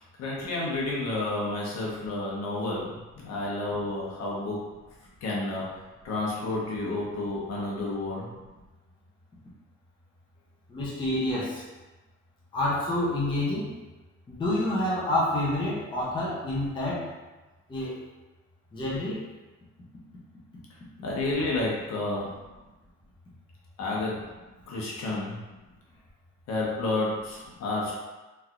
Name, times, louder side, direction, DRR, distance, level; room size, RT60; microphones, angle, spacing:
voice 1, 0.2-4.6 5.2-8.4 21.0-22.3 23.8-24.2 24.7-25.4 26.5-27.9, left 2 dB, 60° left, -4 dB, 0.9 m, -30 dB
voice 2, 10.7-11.7 12.5-13.7 14.3-17.1 17.7-18.0 18.7-19.2, left 1 dB, 15° left, -7 dB, 0.6 m, -28 dB
3.2 x 2.7 x 2.4 m, 1.2 s
cardioid pair, 145°, 29 cm